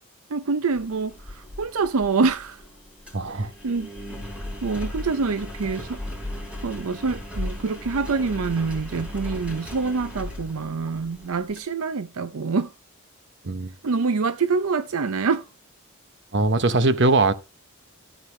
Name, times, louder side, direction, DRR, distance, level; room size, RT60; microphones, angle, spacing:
voice 1, 0.3-2.6 3.3-3.9 4.6-6.0 6.6-12.7 13.8-15.5, right 4 dB, 75° right, 0.6 m, -26 dB
Engine, 0.7-11.6, left 1 dB, 5° right, 3.4 m, -37 dB
voice 2, 3.1-3.5 13.4-13.7 16.3-17.3, right 2 dB, 55° right, 0.9 m, -21 dB
13.5 x 8.1 x 3.2 m
head